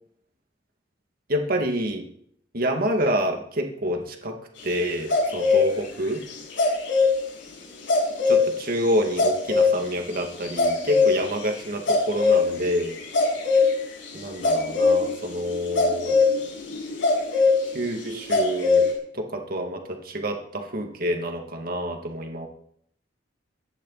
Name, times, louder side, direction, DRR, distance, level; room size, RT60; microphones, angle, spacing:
voice 1, 1.3-2.1 2.5-4.3 4.6-6.2 8.3-13.0 14.1-16.2 17.7-18.9 19.1-22.5, equal, 55° right, 3 dB, 2.5 m, -27 dB
sound 1, 5.1-5.6 6.6-7.1 7.9-8.4 9.2-9.7 10.4-11.2 11.9-12.7 13.1-13.7 14.4-15.2 15.4-17.5 18.3-18.9, left 4 dB, 85° left, 6.8 m, -20 dB
24.0 x 10.5 x 4.3 m, 0.68 s
head